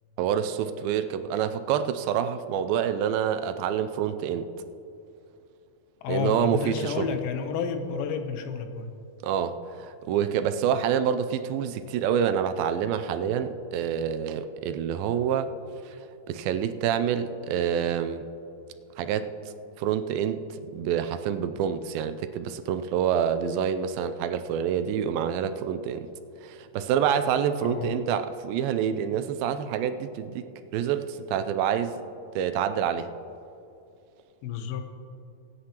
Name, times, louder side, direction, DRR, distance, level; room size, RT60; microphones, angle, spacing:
voice 1, 0.2-4.5 6.1-7.1 9.2-15.5 15.9-16.0 16.3-18.3 19.0-19.3 19.8-26.1 26.4-32.0 32.4-33.1, right 8 dB, 80° right, 10 dB, 2.3 m, -27 dB
voice 2, 6.0-8.9 27.6-28.1 34.4-34.9, left 6 dB, 85° left, 7 dB, 2.7 m, -31 dB
23.5 x 9.5 x 2.9 m, 2.7 s
omnidirectional pair, 4.3 m